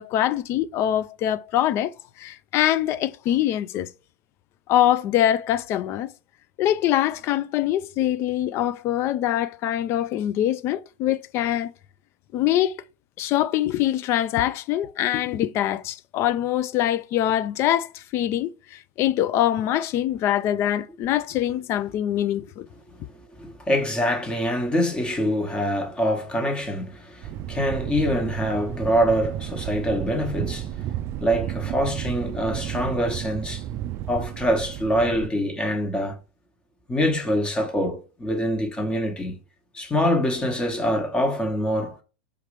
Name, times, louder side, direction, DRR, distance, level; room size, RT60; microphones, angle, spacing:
voice 1, 0.0-3.9 4.7-6.1 6.6-11.7 12.3-12.8 13.2-22.7, left 12 dB, 40° left, 0.4 m, -24 dB
voice 2, 23.0-30.8 31.2-33.6 34.1-36.2 36.9-39.4 39.7-42.0, equal, 15° left, 1.1 m, -25 dB
Thunder, 27.2-35.3, right 12 dB, 40° right, 0.3 m, -32 dB
5.0 x 2.9 x 3.1 m
hypercardioid pair, 105°, 7 cm